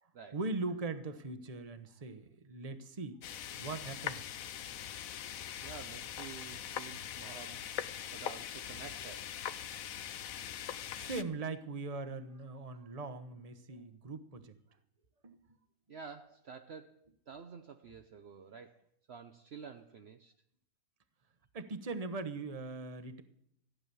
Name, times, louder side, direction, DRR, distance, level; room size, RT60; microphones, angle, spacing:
voice 1, 0.0-3.2 3.6-4.4 9.7-9.8 10.7-14.5 15.2-15.3 21.5-23.2, right 3 dB, 30° right, 1.1 m, -40 dB
sound 1, 3.2-11.2, left 10 dB, 80° left, 1.2 m, -42 dB
voice 2, 5.6-9.3 15.9-20.3, right 6 dB, 55° right, 0.9 m, -50 dB
15.0 x 9.8 x 7.0 m
omnidirectional pair, 1.4 m